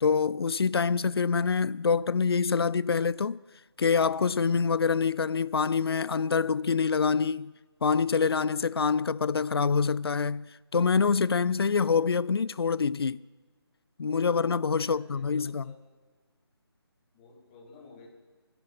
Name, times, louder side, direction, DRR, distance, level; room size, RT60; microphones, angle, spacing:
voice 1, 0.0-3.4 3.8-7.5 7.8-10.5 10.7-13.2 14.0-15.7, left 5 dB, 70° left, 0.4 m, -26 dB
voice 2, 14.7-15.8 17.1-18.1, left 4 dB, 15° left, 1.7 m, -53 dB
27.0 x 10.0 x 4.1 m
figure-of-eight pair, 160°, 14 cm